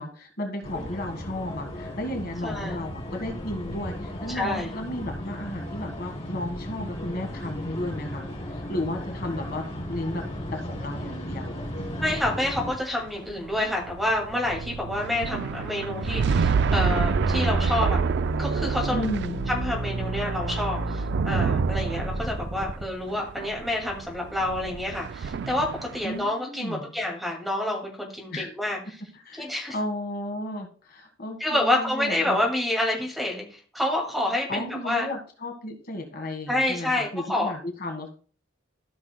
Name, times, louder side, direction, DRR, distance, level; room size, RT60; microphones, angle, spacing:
voice 1, 0.0-10.2 10.5-11.6 18.9-19.4 26.0-26.9 28.3-28.5 29.2-32.4 34.5-38.1, left 1 dB, 55° left, 3 dB, 1.6 m, -34 dB
sound 1, 0.6-12.7, equal, 35° left, 4.0 m, -35 dB
voice 2, 2.4-2.8 4.3-4.7 10.2-10.3 12.0-18.0 18.4-19.1 19.5-28.8 29.4-29.7 31.4-35.1 36.5-37.5, left 1 dB, ahead, 0 dB, 2.2 m, -28 dB
sound 2, 12.6-26.2, right 6 dB, 60° right, 0.3 m, -29 dB
sound 3, 14.1-22.8, right 1 dB, 85° right, 0.8 m, -31 dB
14.5 x 6.0 x 2.2 m, 0.41 s
head